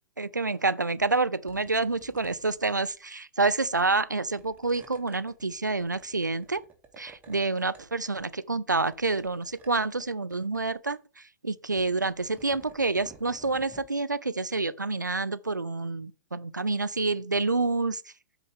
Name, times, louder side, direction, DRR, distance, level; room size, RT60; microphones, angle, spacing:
voice 1, 0.2-6.6 7.0-11.0 11.4-18.0, right 3 dB, 90° right, 0.6 m, -28 dB
sound 1, 1.0-1.2 1.5-2.9 3.7-4.0 4.4-7.4 7.7-8.4 8.7-10.0 10.3-10.6 11.7-13.9, right 5 dB, 15° right, 1.7 m, -54 dB
13.0 x 4.7 x 3.6 m
figure-of-eight pair, 110°, 10 cm